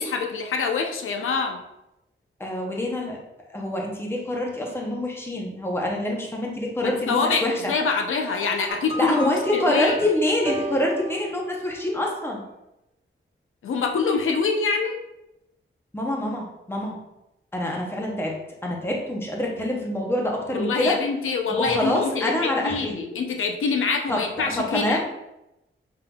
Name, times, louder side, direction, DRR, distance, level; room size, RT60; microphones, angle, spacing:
voice 1, 0.0-1.6 6.8-10.0 13.6-15.0 20.5-25.0, left 5 dB, 85° left, 3 dB, 0.6 m, -25 dB
voice 2, 2.4-3.2 3.5-7.5 8.9-12.4 15.9-17.0 17.5-21.0 21.5-22.9 24.1-24.2 24.6-25.0, left 1 dB, 10° left, -1 dB, 0.7 m, -26 dB
sound 1, 8.7-12.1, right 2 dB, 25° right, 0.7 m, -34 dB
5.6 x 3.7 x 2.3 m, 0.89 s
wide cardioid pair, 175°, 21 cm